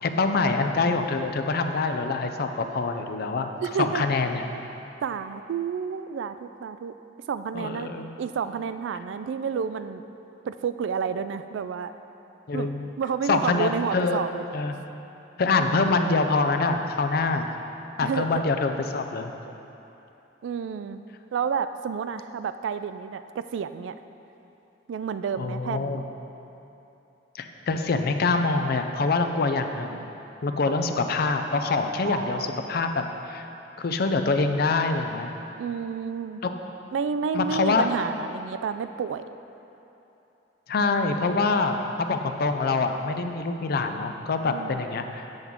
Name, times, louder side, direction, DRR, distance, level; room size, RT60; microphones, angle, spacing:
voice 1, 0.0-3.5 3.8-4.4 7.5-8.0 12.5-12.8 13.3-14.2 14.5-14.7 15.4-17.5 18.0-19.3 25.4-26.0 27.3-30.0 30.4-33.5 33.8-35.3 36.4-36.5 37.3-37.9 40.7-45.3, left 3 dB, 55° left, 6 dB, 0.5 m, -25 dB
voice 2, 3.6-4.0 5.0-6.9 7.3-7.9 8.2-10.1 10.4-11.9 12.5-14.4 18.0-18.4 20.4-21.0 21.3-23.9 24.9-26.0 30.6-30.8 32.0-32.5 35.6-36.4 36.9-39.2 44.5-44.8, right 6 dB, 80° right, 11 dB, 0.3 m, -30 dB
7.8 x 7.1 x 3.6 m, 2.9 s
head